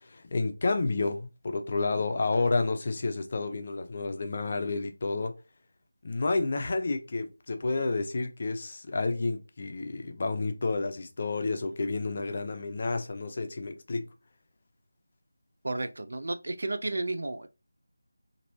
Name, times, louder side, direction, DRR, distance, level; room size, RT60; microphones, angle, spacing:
voice 1, 0.0-5.3 6.0-14.1, left 3 dB, 40° left, 0.5 m, -30 dB
voice 2, 15.6-17.5, right 2 dB, 65° right, 0.3 m, -32 dB
3.0 x 2.6 x 2.6 m
figure-of-eight pair, 170°, 0 cm